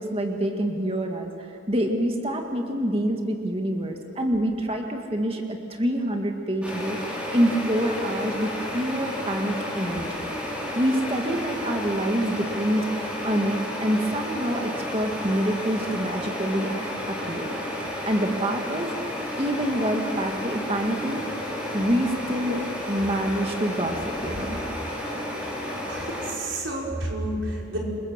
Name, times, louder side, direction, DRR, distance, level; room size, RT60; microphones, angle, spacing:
voice 1, 0.0-7.0 7.3-10.3 10.7-17.5 18.1-18.9 19.4-21.3 21.7-24.6, right 1 dB, 30° right, 3 dB, 2.0 m, -26 dB
sound 1, 6.6-26.3, left 1 dB, 5° right, 5.4 m, -32 dB
voice 2, 25.9-27.8, right 1 dB, 85° right, -2 dB, 5.3 m, -30 dB
28.0 x 24.5 x 7.5 m, 2.5 s
head